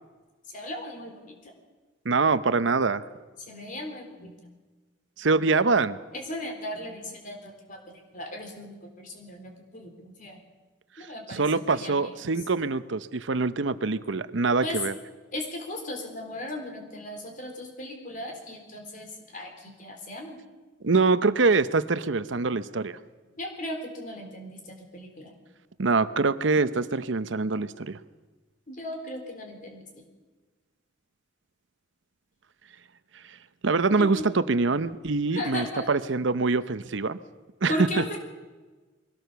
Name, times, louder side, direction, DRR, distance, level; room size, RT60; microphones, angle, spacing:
voice 1, 0.5-1.5 3.5-4.3 6.1-10.4 11.0-12.1 14.6-14.8 15.3-20.4 23.4-25.4 28.7-29.9 34.0-34.3 35.3-35.9 37.7-38.2, left 1 dB, 45° left, 3 dB, 3.7 m, -37 dB
voice 2, 2.0-3.0 5.2-6.0 11.0-14.9 20.8-23.0 25.8-28.0 33.6-37.2 37.6-38.0, right 4 dB, 75° right, 13 dB, 0.8 m, -24 dB
22.0 x 17.5 x 6.9 m, 1.3 s
head